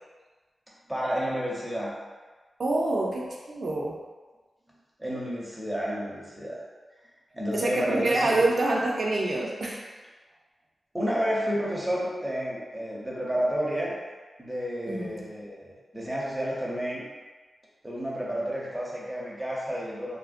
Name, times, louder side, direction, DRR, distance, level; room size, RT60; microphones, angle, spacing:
voice 1, 0.9-1.9 5.0-6.6 7.3-8.5 10.9-13.9 14.4-17.0 17.8-20.2, equal, 10° right, -5 dB, 0.7 m, -30 dB
voice 2, 2.6-4.0 7.5-9.8 14.9-15.2, right 2 dB, 55° right, -2 dB, 0.5 m, -26 dB
3.3 x 2.5 x 2.4 m, 1.3 s
wide cardioid pair, 125°, 0 cm